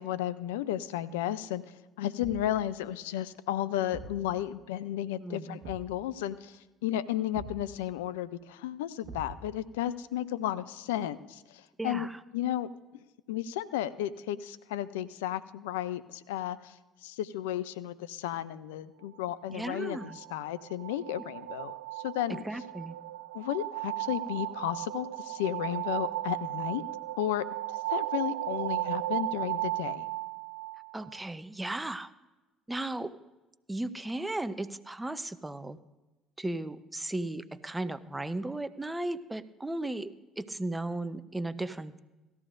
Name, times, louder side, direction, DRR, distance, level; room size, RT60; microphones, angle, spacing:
voice 1, 0.0-1.6 2.0-12.1 12.3-12.7 13.3-22.4 23.3-26.8 27.2-27.4 27.9-30.1, left 12 dB, 85° left, 16 dB, 0.4 m, -33 dB
Thump thud, 2.2-2.6 3.9-4.3 5.6-6.0 7.3-7.7 9.0-9.6, right 3 dB, 65° right, 1.1 m, -44 dB
voice 2, 5.2-5.6 11.8-12.2 19.5-20.2 22.3-23.0 30.9-32.1 32.7-33.1 33.7-35.8 36.4-42.0, right 2 dB, 15° right, 12 dB, 0.7 m, -36 dB
sound 1, 19.5-31.2, right 17 dB, 85° right, 0.5 m, -36 dB
17.5 x 13.5 x 2.5 m, 1.1 s
hypercardioid pair, 60°, 0 cm